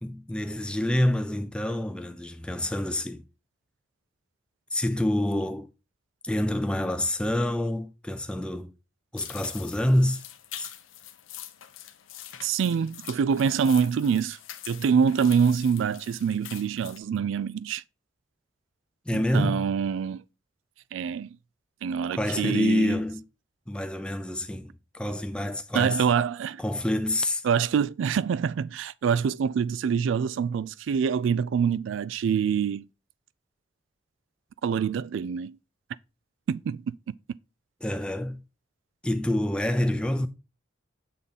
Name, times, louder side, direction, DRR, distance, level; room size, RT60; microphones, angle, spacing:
voice 1, 0.0-3.2 4.7-5.7 6.2-8.7 9.1-10.2 10.6-10.7 19.1-19.7 22.1-23.3 23.7-26.0 26.6-27.4 37.8-38.4 39.0-40.3, left 1 dB, 5° left, 0.4 m, -27 dB
sound 1, 9.2-17.0, left 12 dB, 90° left, 0.6 m, -44 dB
voice 2, 12.4-14.4 14.7-17.8 19.1-20.2 20.9-21.4 21.8-22.9 25.7-26.6 27.4-32.9 34.6-35.6 36.5-36.9, right 7 dB, 75° right, 0.3 m, -25 dB
6.9 x 3.6 x 4.0 m
head